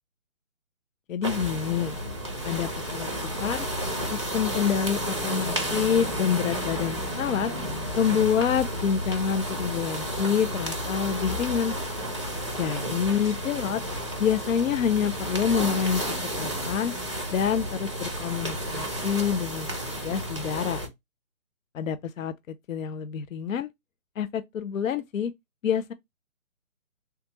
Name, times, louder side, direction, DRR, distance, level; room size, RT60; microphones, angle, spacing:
voice 1, 1.1-2.0 2.4-3.7 4.1-7.5 8.0-11.7 12.6-13.8 14.2-16.0 16.4-16.9 17.3-19.7 20.0-20.8 21.7-23.7 24.2-25.3 25.6-25.9, left 7 dB, 75° left, 0.5 m, -27 dB
sound 1, 1.2-20.9, equal, 25° right, 0.5 m, -32 dB
3.5 x 2.3 x 2.9 m
hypercardioid pair, 165°, 40 cm